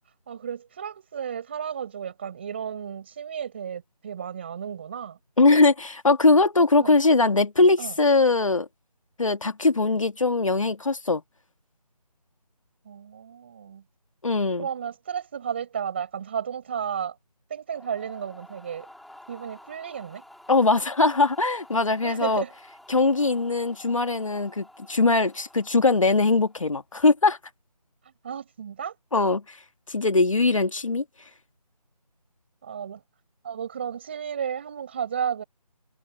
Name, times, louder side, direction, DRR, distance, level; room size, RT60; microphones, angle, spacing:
voice 1, 0.3-5.2 6.8-6.9 7.8-7.9 12.8-13.8 14.6-17.2 17.5-18.9 19.3-20.2 22.0-22.5 28.2-28.9 32.6-33.0 33.4-35.4, right 8 dB, 15° right, 5.8 m, -33 dB
voice 2, 5.4-8.7 9.2-11.2 14.2-14.7 20.5-22.4 22.9-27.4 29.1-29.4 29.9-31.0, left 3 dB, 50° left, 1.9 m, -21 dB
sound 1, 17.7-26.8, left 1 dB, ahead, 2.6 m, -50 dB
figure-of-eight pair, 175°, 21 cm